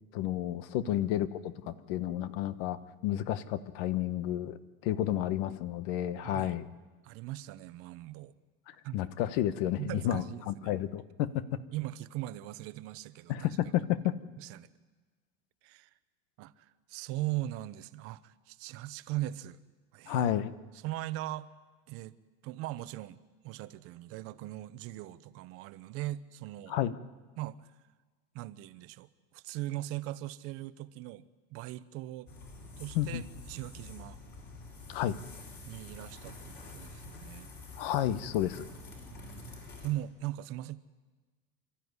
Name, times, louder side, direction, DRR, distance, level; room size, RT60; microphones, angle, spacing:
voice 1, 0.1-4.6 4.8-6.6 8.9-11.4 13.3-14.1 20.1-20.5 26.7-26.9 32.9-33.2 34.9-35.2 37.8-38.6, left 12 dB, 65° left, 14 dB, 1.1 m, -31 dB
voice 2, 6.2-6.6 7.0-8.3 8.8-9.0 9.8-10.7 11.7-13.6 14.4-14.7 15.6-15.9 16.4-19.6 19.9-20.3 20.8-21.5 21.9-22.2 22.4-26.8 27.4-27.7 28.3-32.3 32.8-34.2 35.6-37.5 39.1-39.5 39.8-40.8, right 16 dB, 50° right, 15 dB, 0.8 m, -40 dB
sound 1, 32.3-39.9, left 3 dB, 35° left, 5.1 m, -48 dB
28.0 x 13.0 x 9.6 m, 1.3 s
cardioid pair, 160°, 30 cm